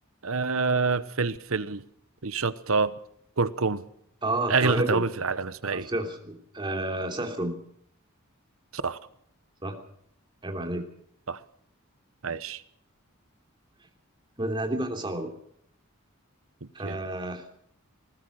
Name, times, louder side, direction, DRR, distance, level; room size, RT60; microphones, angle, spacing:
voice 1, 0.2-1.8 2.2-2.9 3.4-3.8 4.5-5.9 8.7-9.0 11.3-11.4 12.2-12.6 16.6-17.0, right 4 dB, 70° right, 14 dB, 1.1 m, -27 dB
voice 2, 4.2-5.0 5.6-7.6 9.6-9.8 10.4-10.8 14.4-15.3 16.7-17.4, right 1 dB, 20° right, 4 dB, 3.1 m, -30 dB
20.5 x 19.5 x 6.5 m, 0.69 s
head